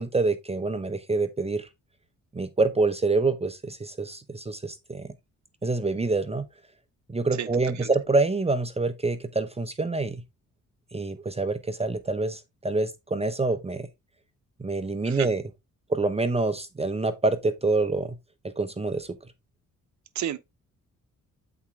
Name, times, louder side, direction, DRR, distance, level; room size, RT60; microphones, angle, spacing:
voice 1, 0.0-1.7 2.3-5.1 5.6-6.5 7.1-10.2 10.9-13.9 14.6-15.4 15.9-18.2 18.6-19.2, right 3 dB, 20° right, 0.7 m, -26 dB
voice 2, 7.4-7.5 7.8-7.9 15.0-15.3 20.1-20.4, right 11 dB, 60° right, 0.8 m, -31 dB
8.1 x 4.3 x 3.5 m
cardioid pair, 80°, 32 cm